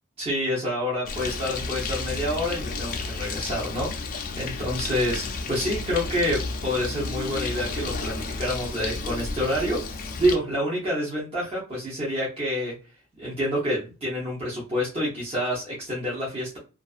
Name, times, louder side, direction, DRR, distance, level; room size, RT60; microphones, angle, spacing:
voice 1, 0.2-12.7 13.2-16.6, equal, 25° right, -6 dB, 0.7 m, -28 dB
Bird, 1.1-10.4, left 4 dB, 40° left, 0.4 m, -32 dB
2.4 x 2.4 x 2.3 m, 0.33 s
head